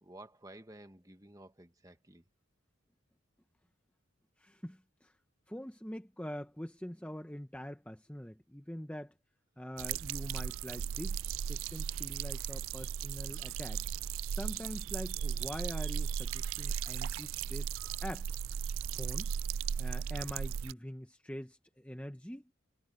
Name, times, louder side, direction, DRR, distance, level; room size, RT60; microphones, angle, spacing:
voice 1, 0.0-2.2, right 1 dB, 15° right, 1.4 m, -53 dB
voice 2, 4.4-5.2 5.5-9.1 9.6-11.2 11.5-13.8 14.3-18.4 18.9-19.3 19.8-22.5, equal, 5° left, 0.9 m, -44 dB
sound 1, 9.8-20.7, right 8 dB, 70° right, 0.3 m, -36 dB
head